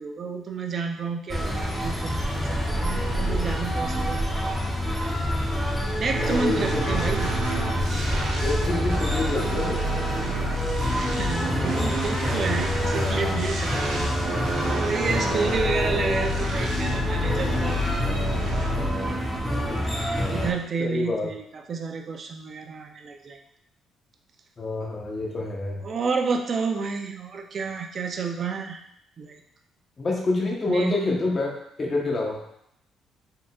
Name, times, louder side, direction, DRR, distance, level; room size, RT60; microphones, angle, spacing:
voice 1, 0.0-4.3 6.0-7.3 11.0-17.8 18.3-18.7 19.8-23.4 25.8-28.8 29.2-29.4 30.7-30.9, right 4 dB, 50° right, 4 dB, 0.6 m, -30 dB
sound 1, 1.3-20.5, equal, ahead, 0.9 m, -27 dB
sound 2, 6.1-19.1, equal, 80° right, 1.0 m, -30 dB
voice 2, 6.2-7.1 8.4-9.9 15.4-15.5 20.8-21.3 24.6-25.8 30.0-32.4, left 2 dB, 40° left, -1 dB, 1.1 m, -27 dB
4.5 x 3.6 x 2.4 m, 0.75 s
supercardioid pair, 75°, 0 cm